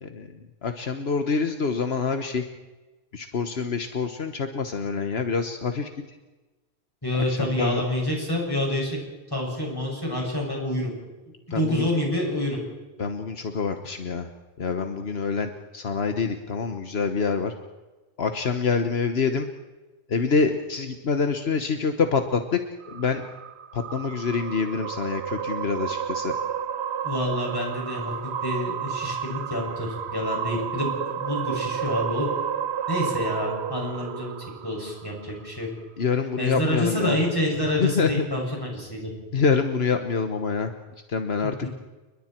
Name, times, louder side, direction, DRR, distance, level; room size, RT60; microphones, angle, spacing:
voice 1, 0.0-2.4 3.1-6.2 7.1-7.8 11.5-11.9 13.0-14.3 14.6-17.5 18.2-19.5 20.1-22.6 22.9-23.3 23.7-26.3 36.0-37.2 37.8-38.3 39.3-40.7 41.1-41.6, left 5 dB, 75° left, 6 dB, 1.5 m, -26 dB
voice 2, 7.0-9.0 9.3-10.9 11.5-12.6 27.0-28.1 28.4-32.3 32.9-34.4 34.6-35.7 36.4-39.1 41.4-41.7, left 1 dB, 20° left, -2 dB, 7.1 m, -27 dB
sound 1, 22.8-35.3, right 8 dB, 85° right, 1.1 m, -31 dB
30.0 x 21.5 x 4.5 m, 1.2 s
omnidirectional pair, 1.1 m